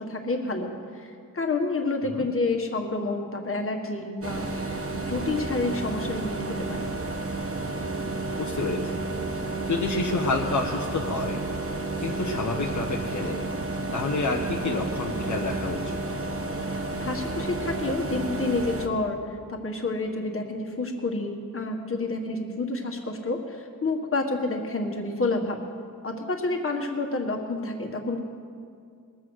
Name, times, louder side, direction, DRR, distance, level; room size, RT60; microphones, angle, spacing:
voice 1, 0.0-6.9 17.0-25.6 26.0-28.2, left 3 dB, 40° left, 2 dB, 1.6 m, -29 dB
sound 1, 4.2-18.9, right 3 dB, 40° right, 1.2 m, -31 dB
voice 2, 8.4-9.0 9.4-11.4 12.0-13.4 13.9-16.0, left 3 dB, 55° left, -1 dB, 1.1 m, -29 dB
21.0 x 7.9 x 6.4 m, 2.3 s
wide cardioid pair, 120°, 34 cm